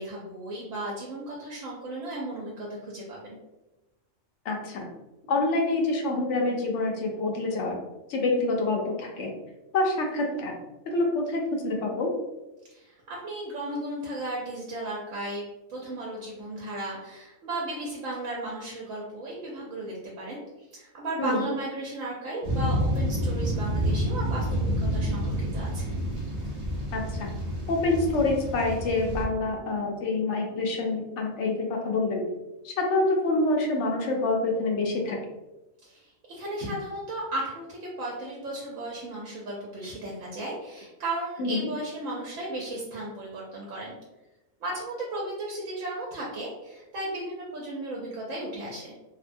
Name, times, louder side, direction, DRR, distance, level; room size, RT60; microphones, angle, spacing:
voice 1, 0.0-3.4 12.7-20.4 20.7-25.9 35.8-43.9 44.6-48.9, right 1 dB, 80° right, -4 dB, 1.0 m, -35 dB
voice 2, 4.5-4.9 5.3-7.8 8.1-9.3 9.7-10.5 10.9-12.1 21.2-21.5 26.9-27.3 27.7-32.2 32.6-35.2 41.4-41.7, left 2 dB, 70° left, 0 dB, 0.9 m, -26 dB
sound 1, 22.4-29.2, equal, 40° right, 0.5 m, -28 dB
2.6 x 2.1 x 2.5 m, 1.0 s
omnidirectional pair, 1.3 m